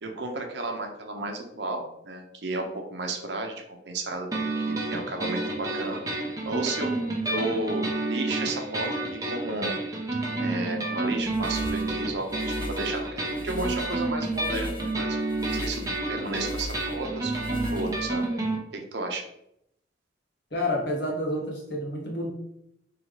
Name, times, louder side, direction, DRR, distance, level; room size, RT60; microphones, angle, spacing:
voice 1, 0.0-6.9 7.3-9.7 10.1-14.7 15.0-18.2 18.7-19.2, right 2 dB, 75° right, 3 dB, 0.7 m, -33 dB
sound 1, 4.3-18.6, right 2 dB, 20° right, 0.7 m, -30 dB
sound 2, 11.2-18.3, left 1 dB, 25° left, 0.6 m, -39 dB
voice 2, 20.5-22.3, left 1 dB, 70° left, -2 dB, 1.2 m, -29 dB
3.7 x 3.1 x 3.2 m, 0.77 s
head